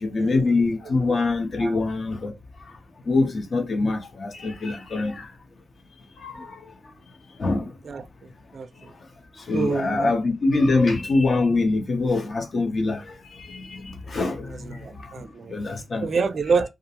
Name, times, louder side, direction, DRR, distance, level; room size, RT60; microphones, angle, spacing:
voice 1, 0.0-2.3 3.1-5.1 6.2-6.5 7.4-7.7 9.5-13.0 13.4-13.8 14.1-14.5 15.5-16.1, left 3 dB, 50° left, 0.7 m, -23 dB
voice 2, 9.5-10.1 14.1-14.2 14.7-15.5 16.0-16.7, right 5 dB, 55° right, 0.4 m, -26 dB
2.4 x 2.1 x 2.8 m
wide cardioid pair, 125°, 0 cm